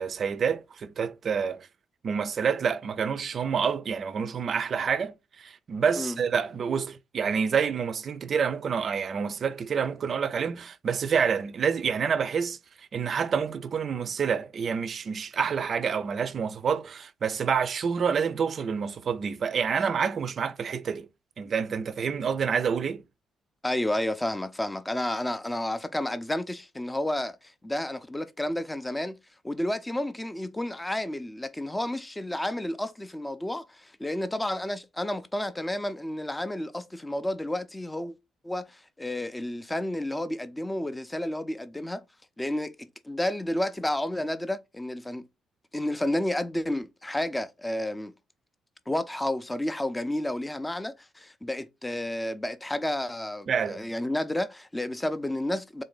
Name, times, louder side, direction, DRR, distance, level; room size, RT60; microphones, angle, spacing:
voice 1, 0.0-1.7 2.0-21.1 21.4-23.0 53.5-53.9, right 6 dB, 50° right, 0.4 m, -28 dB
voice 2, 23.6-29.2 29.4-38.1 38.4-42.0 42.4-45.3 45.7-48.1 48.9-55.8, left 1 dB, 10° left, 0.5 m, -31 dB
3.8 x 2.5 x 3.8 m
cardioid pair, 90°, 0 cm